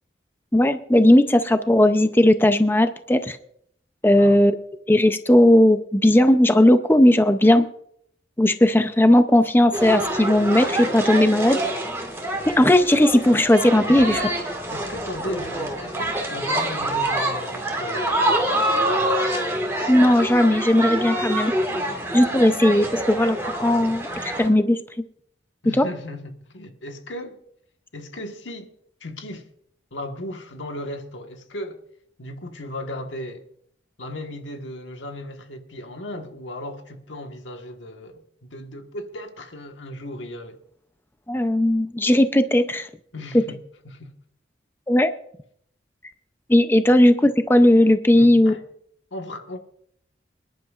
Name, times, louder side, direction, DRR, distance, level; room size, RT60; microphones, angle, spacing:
voice 1, 0.5-3.4 4.0-4.5 4.9-7.7 8.4-11.6 12.6-14.2 19.9-21.5 22.1-23.4 23.6-24.8 25.8-25.9 41.3-42.9 44.9-45.1 46.5-48.5, left 1 dB, 10° left, 0.5 m, -17 dB
voice 2, 4.1-4.5 13.9-14.4 14.7-19.2 25.6-27.4 27.9-28.7 29.0-29.5 29.9-31.8 32.2-33.4 34.0-40.6 43.1-44.1 48.1-48.6 49.1-49.6, left 1 dB, 90° left, 1.4 m, -36 dB
sound 1, 9.7-24.5, right 1 dB, 15° right, 1.9 m, -26 dB
26.5 x 10.5 x 2.4 m
head